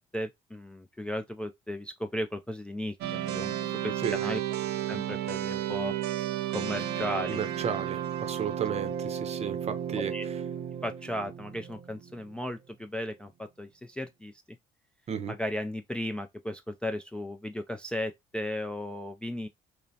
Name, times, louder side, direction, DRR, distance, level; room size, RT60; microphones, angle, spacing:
voice 1, 0.1-4.4 4.9-5.9 6.5-7.4 10.1-10.2 10.8-14.3 15.3-19.5, left 1 dB, 5° left, 0.3 m, -35 dB
sound 1, 3.0-12.3, right 11 dB, 75° right, 0.5 m, -33 dB
voice 2, 7.3-10.4 15.1-15.3, right 7 dB, 40° right, 0.7 m, -34 dB
5.2 x 2.1 x 2.7 m
cardioid pair, 110°, 17 cm